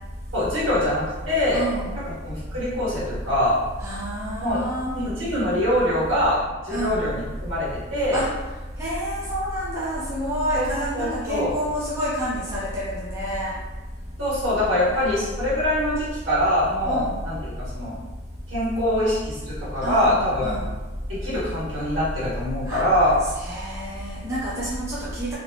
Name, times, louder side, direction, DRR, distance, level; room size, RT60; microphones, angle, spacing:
voice 1, 0.3-1.6 2.2-3.6 4.4-4.6 4.9-8.2 10.5-11.5 14.2-17.9 18.5-20.6 21.1-23.1, left 1 dB, 75° right, -10 dB, 1.4 m, -24 dB
voice 2, 1.5-2.0 3.8-4.9 6.7-7.0 8.1-8.3 8.8-13.5 14.9-15.2 16.8-17.2 19.8-20.1 20.4-20.7 22.7-22.8 23.4-25.3, equal, 15° right, -9 dB, 0.5 m, -28 dB
2.8 x 2.1 x 2.8 m, 1.2 s
head